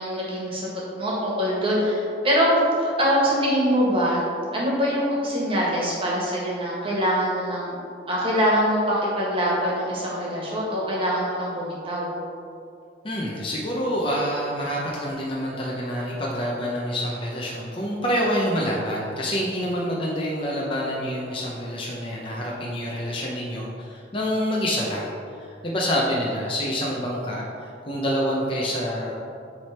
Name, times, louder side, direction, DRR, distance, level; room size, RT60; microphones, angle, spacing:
voice 1, 0.0-2.5 2.8-4.2 4.5-7.7 8.1-12.1, equal, 30° right, -5 dB, 1.6 m, -24 dB
voice 2, 13.0-29.1, equal, 30° left, -4 dB, 0.8 m, -27 dB
8.8 x 3.5 x 4.3 m, 2.5 s
head